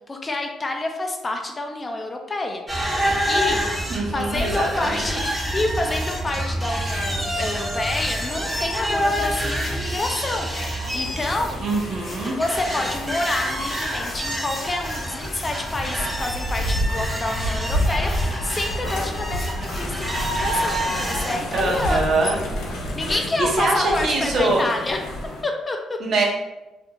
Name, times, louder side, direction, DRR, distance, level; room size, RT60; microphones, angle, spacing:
voice 1, 0.1-3.6 4.1-11.6 12.3-22.1 22.9-25.0 25.4-26.0, left 2 dB, 25° left, 3 dB, 0.4 m, -28 dB
sound 1, 2.7-21.4, equal, 15° right, 0.6 m, -28 dB
voice 2, 3.9-5.1 11.6-12.4 21.5-22.4 23.4-24.7 26.0-26.3, right 2 dB, 60° right, -1 dB, 0.6 m, -23 dB
sound 2, 4.1-22.7, left 1 dB, 45° left, 0.9 m, -39 dB
sound 3, 10.8-25.4, left 1 dB, 75° left, 0.5 m, -30 dB
2.5 x 2.2 x 2.8 m, 1.0 s
cardioid pair, 90°, 0 cm